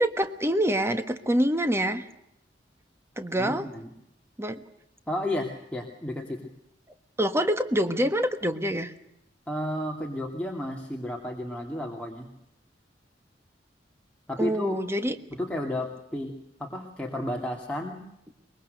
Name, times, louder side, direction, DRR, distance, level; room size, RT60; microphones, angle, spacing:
voice 1, 0.0-2.1 3.2-3.7 4.4-4.6 7.2-8.9 14.4-15.2, equal, 15° right, 9 dB, 1.4 m, -26 dB
voice 2, 3.4-3.9 5.1-6.4 9.5-12.3 14.3-14.8 15.3-16.3 16.6-18.0, left 1 dB, 5° left, -1 dB, 2.4 m, -32 dB
23.5 x 22.0 x 6.6 m, 0.81 s
head